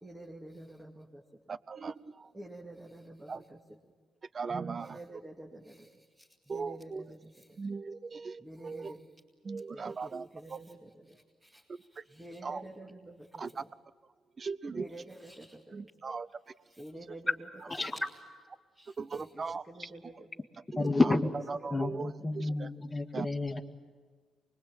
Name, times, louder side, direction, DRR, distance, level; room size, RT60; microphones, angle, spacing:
voice 1, 0.0-1.4 2.3-3.8 4.8-7.6 8.4-9.0 9.7-13.7 14.7-15.8 16.7-18.2 18.7-20.3 21.6-22.7, right 1 dB, 15° right, -1 dB, 2.4 m, -49 dB
voice 2, 1.5-2.3 3.3-3.4 4.3-5.0 6.5-7.0 7.6-8.9 9.4-10.6 12.0-12.1 12.4-12.6 13.4-13.6 14.4-14.9 15.7-16.3 19.0-19.9 20.8-21.2 21.5-22.7 23.1-23.3, right 4 dB, 35° right, 17 dB, 0.8 m, -38 dB
voice 3, 20.8-21.3 21.7-23.6, left 2 dB, 15° left, 2 dB, 1.9 m, -30 dB
25.0 x 21.5 x 9.0 m, 1.5 s
cardioid pair, 90°, 0 cm